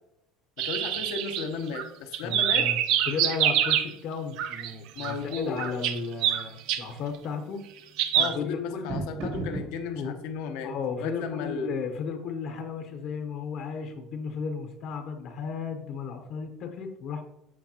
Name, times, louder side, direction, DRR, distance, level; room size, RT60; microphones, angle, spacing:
voice 1, 0.6-2.7 4.9-5.6 8.1-10.7 11.0-11.7, left 5 dB, 75° left, 5 dB, 0.9 m, -34 dB
sound 1, 0.6-1.8 2.1-3.9 4.4-4.7 5.0-6.8 8.0-8.3, right 10 dB, 60° right, 0.6 m, -26 dB
voice 2, 2.2-5.1 5.5-7.6 8.2-8.9 9.9-10.1 10.6-17.2, left 5 dB, 45° left, 5 dB, 0.8 m, -34 dB
sound 2, 4.4-15.1, right 2 dB, 85° right, 2.8 m, -43 dB
8.3 x 6.5 x 2.9 m, 0.84 s
cardioid pair, 170°, 0 cm